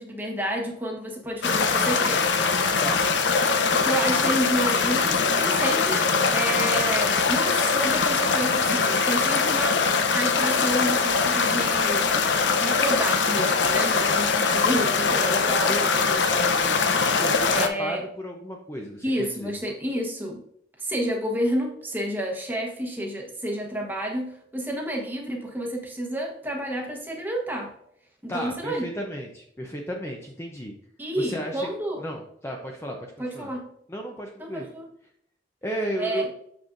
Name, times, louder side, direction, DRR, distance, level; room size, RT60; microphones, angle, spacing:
voice 1, 0.0-2.2 3.7-12.0 12.5-16.0 17.5-18.0 19.0-20.4 20.8-27.7 28.2-28.9 31.0-32.0 33.2-33.7 34.4-34.9 36.0-36.3, right 1 dB, 10° right, 0 dB, 1.1 m, -30 dB
sound 1, 1.4-17.7, left 5 dB, 75° left, 0.7 m, -22 dB
voice 2, 15.6-19.5 28.3-30.7 31.2-31.7 32.0-33.0 33.3-33.5 33.9-34.7 35.6-36.3, equal, 15° left, 1 dB, 0.6 m, -34 dB
6.8 x 6.1 x 2.6 m, 0.70 s
head